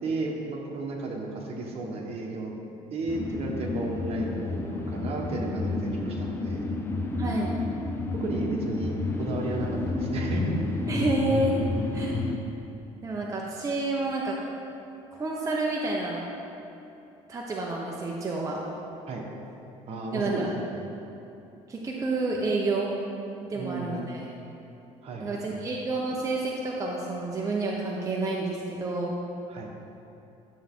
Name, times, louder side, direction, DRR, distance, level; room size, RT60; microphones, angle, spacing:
voice 1, 0.0-2.5 2.9-6.6 8.1-10.5 19.1-19.2 19.9-20.9 23.5-24.1 25.0-25.6 29.5-29.7, right 2 dB, 50° right, -1 dB, 1.6 m, -33 dB
sound 1, 3.1-12.4, left 3 dB, 20° left, 0.8 m, -30 dB
voice 2, 7.2-7.5 10.9-11.6 11.9-12.2 13.0-14.4 15.1-16.2 17.3-18.6 20.1-20.5 21.7-22.9 23.5-24.3 25.2-29.2, right 2 dB, 25° right, -3 dB, 0.9 m, -29 dB
12.0 x 7.3 x 3.8 m, 2.9 s
cardioid pair, 125°, 13 cm